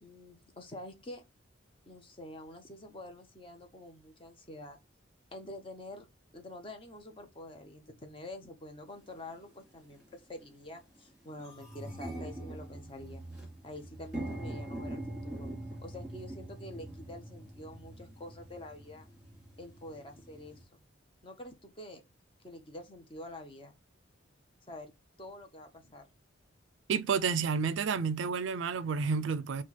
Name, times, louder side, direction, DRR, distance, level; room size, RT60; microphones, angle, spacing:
voice 1, 0.0-1.2 1.9-4.8 5.3-6.1 6.3-13.2 13.6-15.5 15.8-19.1 19.6-20.7 21.2-22.0 22.4-23.7 24.7-24.9 25.2-26.1, left 1 dB, 25° left, 0.8 m, -47 dB
sound 1, 9.0-9.1 9.9-10.1 10.5-10.6 10.9-20.6, right 1 dB, ahead, 2.4 m, -43 dB
voice 2, 26.9-29.6, right 5 dB, 70° right, 0.4 m, -30 dB
4.5 x 2.4 x 4.1 m
head